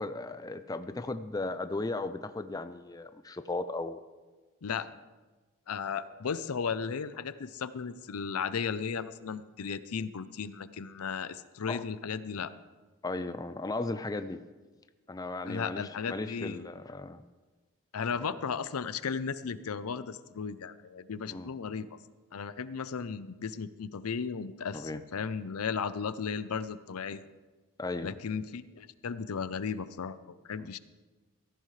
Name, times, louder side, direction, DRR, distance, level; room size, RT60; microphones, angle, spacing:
voice 1, 0.0-4.0 11.7-11.8 13.0-14.4 15.1-17.2 21.3-21.5 24.7-25.0 27.8-28.2 30.6-30.7, left 2 dB, 15° left, 10 dB, 0.4 m, -36 dB
voice 2, 5.7-12.5 15.5-16.7 17.9-22.0 22.3-27.3 28.0-30.8, left 6 dB, 85° left, 14 dB, 0.6 m, -35 dB
17.0 x 14.5 x 3.2 m, 1.3 s
head